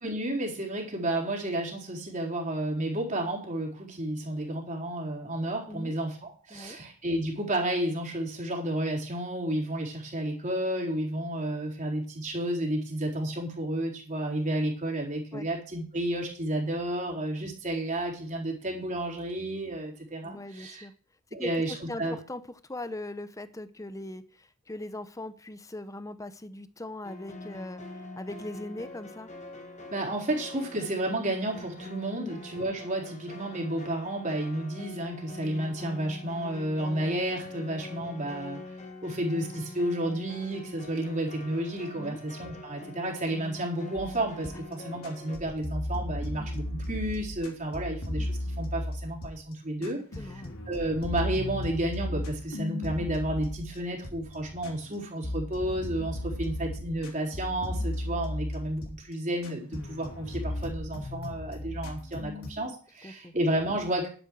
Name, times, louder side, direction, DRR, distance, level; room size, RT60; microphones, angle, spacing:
voice 1, 0.0-20.8 21.3-22.1 29.9-38.6 39.0-50.3 50.7-64.1, right 1 dB, 35° right, -1 dB, 4.2 m, -31 dB
voice 2, 20.2-20.9 21.4-21.5 21.9-29.3 32.1-32.4 41.9-42.2 44.5-44.6 49.8-49.9 50.2-50.6 63.0-63.3, left 1 dB, 15° left, 12 dB, 0.8 m, -40 dB
sound 1, 27.0-45.4, left 2 dB, 35° left, 1.8 m, -44 dB
sound 2, 44.0-44.7 45.0-49.5 49.8-55.0 55.2-59.1 59.4-62.5, left 1 dB, 70° left, 3.3 m, -35 dB
11.5 x 10.5 x 4.8 m, 0.41 s
head